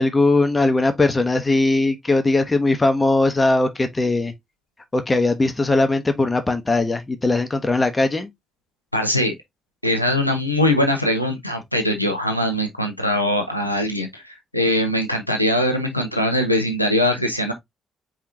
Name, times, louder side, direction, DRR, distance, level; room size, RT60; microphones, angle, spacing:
voice 1, 0.0-4.3 4.9-8.3, left 2 dB, 20° left, 0.8 m, -19 dB
voice 2, 8.9-9.3 9.8-17.5, left 1 dB, 90° left, 0.6 m, -21 dB
4.7 x 3.7 x 2.7 m
figure-of-eight pair, 40°, 0 cm